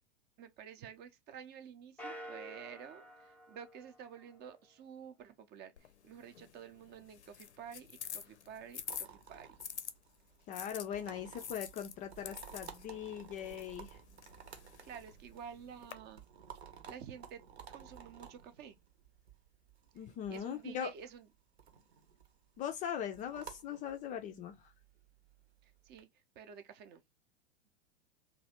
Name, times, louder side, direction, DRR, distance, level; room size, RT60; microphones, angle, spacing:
voice 1, 0.4-9.6 14.8-16.2 16.9-17.4 17.7-18.8 20.3-21.3 25.6-26.1 26.4-27.0, right 8 dB, 30° right, 0.6 m, -50 dB
sound 1, 2.0-4.7, equal, 5° left, 0.8 m, -50 dB
sound 2, 5.8-9.9 10.5-15.9, left 8 dB, 85° left, 0.6 m, -48 dB
sound 3, 8.9-26.0, right 8 dB, 70° right, 1.0 m, -55 dB
voice 2, 10.5-14.0 20.0-20.9 22.6-24.5, left 9 dB, 25° left, 0.4 m, -40 dB
3.1 x 2.6 x 2.8 m
figure-of-eight pair, 95°, 33 cm